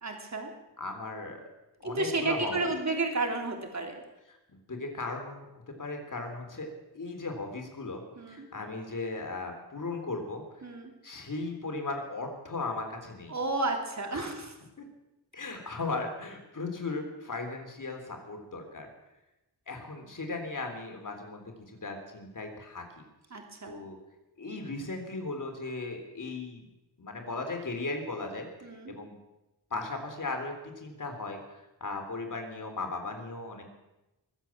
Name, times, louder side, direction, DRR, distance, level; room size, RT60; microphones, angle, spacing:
voice 1, 0.0-0.5 1.8-3.9 8.2-8.5 10.6-10.9 13.3-14.5 23.3-23.8 28.6-28.9, right 2 dB, 40° right, 3 dB, 3.3 m, -32 dB
voice 2, 0.8-1.4 1.8-2.7 4.3-4.4 4.7-8.0 8.3-10.7 11.0-13.4 14.1-14.4 14.8-14.9 15.3-18.9 19.7-23.0 23.7-24.0 24.4-26.7 27.0-28.5 28.9-29.1 29.7-33.6, left 3 dB, 45° left, 3 dB, 3.6 m, -37 dB
23.0 x 8.1 x 7.3 m, 0.96 s
cardioid pair, 70°, 42 cm